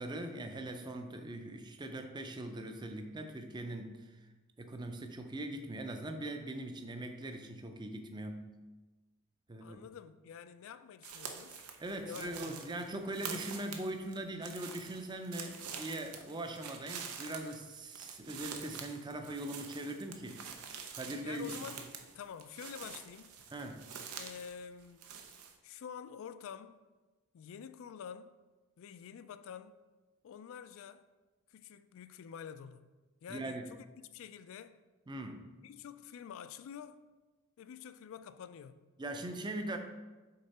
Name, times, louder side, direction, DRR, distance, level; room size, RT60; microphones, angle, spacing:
voice 1, 0.0-4.2 4.6-8.5 9.5-9.8 11.8-21.5 23.5-23.9 33.3-33.7 35.1-35.5 39.0-39.8, right 1 dB, 20° right, 0.5 m, -41 dB
voice 2, 9.6-11.6 12.0-12.7 21.1-23.3 24.2-25.1 25.6-26.8 27.3-28.4 28.8-29.8 30.2-31.1 31.5-32.9 33.2-33.8 34.1-34.8 35.6-37.1 37.6-38.9, left 7 dB, 65° left, 0.3 m, -48 dB
sound 1, 11.0-24.5 24.8-25.6, right 6 dB, 85° right, 0.7 m, -46 dB
6.7 x 3.8 x 4.2 m
head